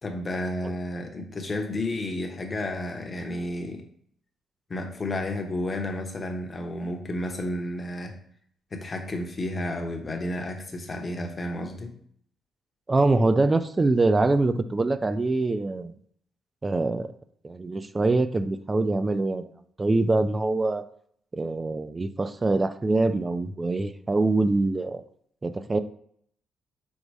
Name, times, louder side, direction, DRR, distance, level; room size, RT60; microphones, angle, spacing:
voice 1, 0.0-3.8 4.7-8.2 8.7-11.9, left 1 dB, 30° left, 4 dB, 0.7 m, -31 dB
voice 2, 12.9-15.9 16.6-17.1 17.4-19.5 19.8-20.8 21.3-25.0 25.4-25.8, right 2 dB, 20° right, 11 dB, 0.3 m, -24 dB
5.3 x 2.1 x 4.6 m, 0.63 s
cardioid pair, 115°, 0 cm